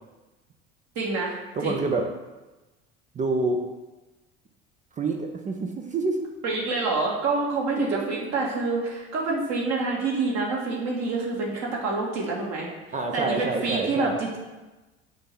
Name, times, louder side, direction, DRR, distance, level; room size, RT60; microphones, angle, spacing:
voice 1, 0.9-1.8 6.4-12.7 13.1-14.4, right 3 dB, 50° right, -2 dB, 1.6 m, -27 dB
voice 2, 1.5-2.1 3.1-3.6 5.0-6.3 7.8-8.7 12.9-14.2, right 3 dB, 20° right, 3 dB, 0.5 m, -28 dB
6.2 x 2.9 x 5.5 m, 1.1 s
figure-of-eight pair, 60°, 35 cm